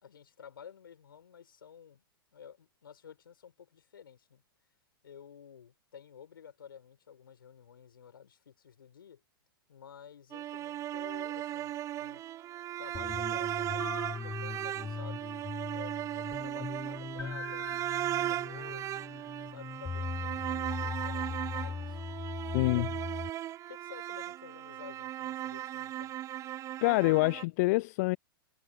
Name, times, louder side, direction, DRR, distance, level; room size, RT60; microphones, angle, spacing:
voice 1, 0.0-2.0 2.3-4.4 5.0-9.2 9.7-12.2 12.8-15.2 15.7-19.1 19.5-22.0 22.7-22.8 23.7-26.1, left 8 dB, 70° left, 5.0 m, -52 dB
sound 1, 10.3-27.4, right 13 dB, 25° right, 0.6 m, -37 dB
sound 2, 12.9-23.3, left 5 dB, 15° left, 1.8 m, -40 dB
voice 2, 22.5-22.9 26.8-28.2, left 23 dB, 45° left, 0.6 m, -26 dB
figure-of-eight pair, 100°, 12 cm